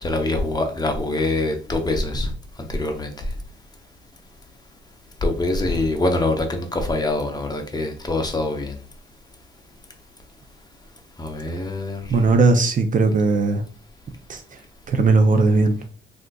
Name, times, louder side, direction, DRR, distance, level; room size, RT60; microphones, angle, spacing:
voice 1, 0.0-2.3 2.6-3.1 5.2-8.7 11.2-12.1, left 2 dB, 20° left, 4 dB, 0.6 m, -24 dB
voice 2, 12.1-13.6 14.3-14.4 14.9-15.7, right 3 dB, 40° right, 7 dB, 0.4 m, -17 dB
3.6 x 2.5 x 2.2 m, 0.40 s
cardioid pair, 90°, 20 cm